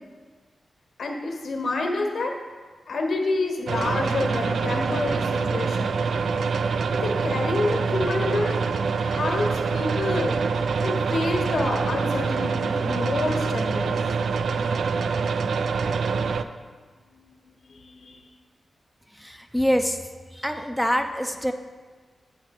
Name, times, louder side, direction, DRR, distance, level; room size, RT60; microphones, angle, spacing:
voice 1, 1.0-2.3 2.9-6.0 6.9-8.6 9.0-10.4 10.8-14.0 17.1-17.3 17.7-18.2, left 2 dB, 75° left, 2 dB, 1.2 m, -28 dB
sound 1, 3.7-16.4, right 5 dB, 85° right, 0.3 m, -25 dB
voice 2, 19.1-20.0 20.3-21.5, equal, ahead, 6 dB, 0.4 m, -25 dB
8.5 x 6.0 x 4.2 m, 1.4 s
wide cardioid pair, 115°, 0 cm